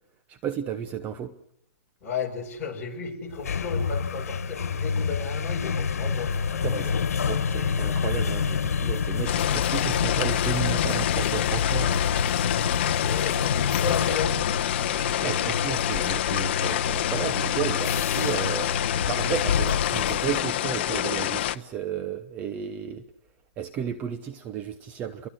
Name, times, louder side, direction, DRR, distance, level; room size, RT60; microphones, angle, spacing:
voice 1, 0.3-1.3 6.6-6.9 7.2-12.1 14.8-18.7 19.1-23.0 23.6-25.3, right 9 dB, 20° right, 1.0 m, -33 dB
voice 2, 2.0-7.0 13.0-14.5 15.1-15.7, left 5 dB, 15° left, 6.9 m, -34 dB
sound 1, 3.3-20.4, left 6 dB, 80° left, 1.6 m, -28 dB
sound 2, 9.3-21.6, left 13 dB, 45° left, 1.0 m, -27 dB
30.0 x 23.0 x 6.5 m
hypercardioid pair, 160°, 8 cm